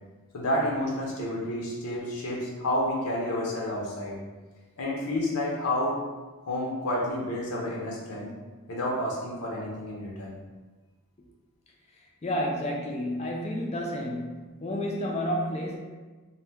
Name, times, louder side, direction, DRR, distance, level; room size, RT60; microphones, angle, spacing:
voice 1, 0.3-4.2 4.8-6.0 6.5-8.3 8.7-10.4, left 1 dB, 85° left, -3 dB, 0.6 m, -30 dB
voice 2, 11.9-15.8, equal, 30° left, 0 dB, 0.4 m, -31 dB
2.8 x 2.1 x 3.3 m, 1.3 s
head